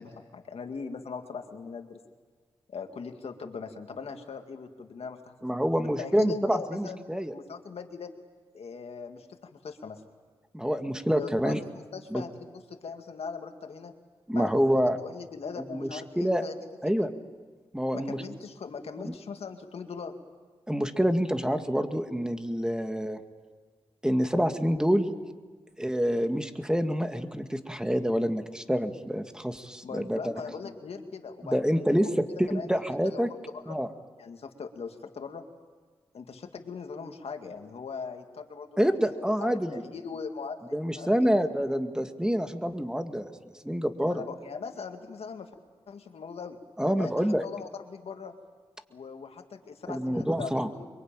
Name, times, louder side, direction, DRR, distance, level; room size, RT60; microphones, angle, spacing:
voice 1, 0.0-2.0 2.7-5.6 6.0-7.1 7.3-8.1 8.5-10.0 11.1-13.9 14.3-16.6 17.0-17.1 17.9-20.1 29.8-31.8 32.5-32.7 33.0-33.3 33.7-33.8 34.2-35.4 36.1-38.9 39.4-41.1 44.0-45.5 45.9-46.6 47.0-48.3 48.9-50.9, left 5 dB, 75° left, 5 dB, 2.2 m, -40 dB
voice 2, 5.4-7.3 10.5-11.6 12.1-12.2 14.3-15.0 15.6-16.4 16.8-17.1 17.7-18.2 20.7-23.2 24.0-25.1 25.8-30.3 31.4-33.3 33.7-33.9 38.8-39.8 40.7-44.2 46.8-47.4 49.9-50.7, equal, 5° right, 7 dB, 2.1 m, -27 dB
24.0 x 23.0 x 9.1 m, 1.5 s
cardioid pair, 45°, 10 cm